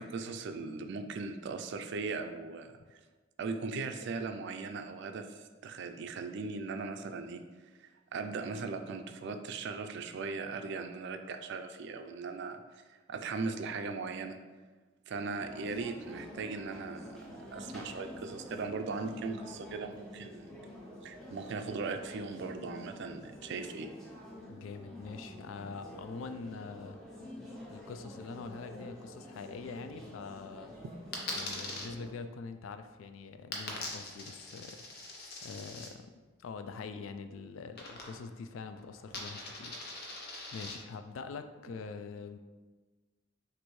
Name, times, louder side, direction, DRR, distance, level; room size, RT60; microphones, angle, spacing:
voice 1, 0.0-2.7 3.4-7.4 7.8-12.6 13.1-14.4 15.1-17.2 17.5-20.5 21.0-23.9, right 4 dB, 60° right, 7 dB, 0.4 m, -38 dB
sound 1, 15.4-32.2, equal, 5° left, 0.8 m, -48 dB
voice 2, 24.5-27.0 27.7-30.7 31.3-34.8 35.4-36.1 36.4-42.4, left 4 dB, 80° left, 9 dB, 0.3 m, -44 dB
Coin (dropping), 31.1-31.9 33.5-35.9 37.8-38.4 38.7-40.7, left 2 dB, 55° left, 0.8 m, -42 dB
6.1 x 2.6 x 3.1 m, 1.3 s
head